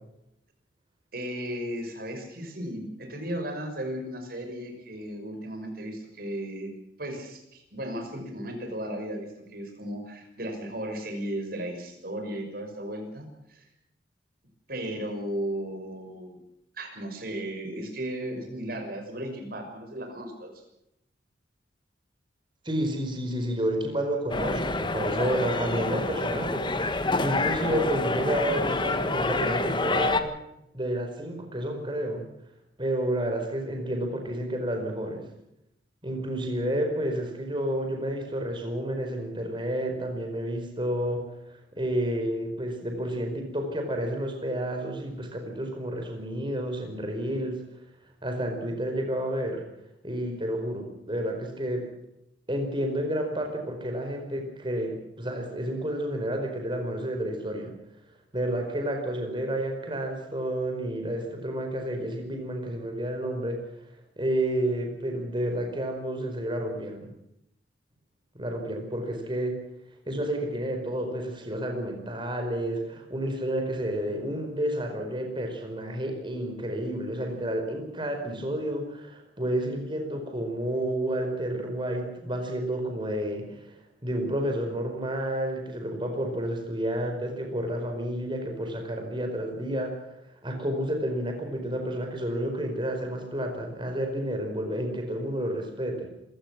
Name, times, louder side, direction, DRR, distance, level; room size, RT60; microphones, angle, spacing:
voice 1, 1.1-6.7 7.0-13.7 14.7-16.4 16.7-20.6, right 1 dB, 55° right, 4 dB, 6.0 m, -35 dB
voice 2, 22.6-30.3 30.7-32.2 32.8-35.3 36.0-47.8 48.2-49.6 50.0-51.8 52.5-57.7 58.3-67.1 68.4-69.5 70.1-96.1, right 1 dB, 25° right, 4 dB, 4.9 m, -30 dB
sound 1, 24.3-30.2, left 2 dB, 25° left, 1.5 m, -27 dB
26.5 x 16.5 x 6.1 m, 0.82 s
head